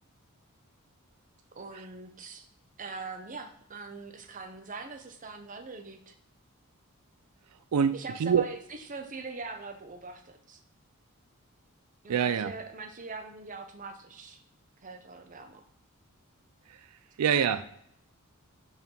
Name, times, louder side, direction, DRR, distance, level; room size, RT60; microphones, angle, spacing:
voice 1, 1.6-2.5 2.8-6.1 7.9-10.6 12.0-14.4 14.8-15.6, right 4 dB, 35° right, 6 dB, 0.7 m, -42 dB
voice 2, 7.7-8.5 12.1-12.5 17.2-17.6, right 7 dB, 85° right, 12 dB, 0.4 m, -25 dB
5.6 x 4.6 x 5.4 m, 0.70 s
head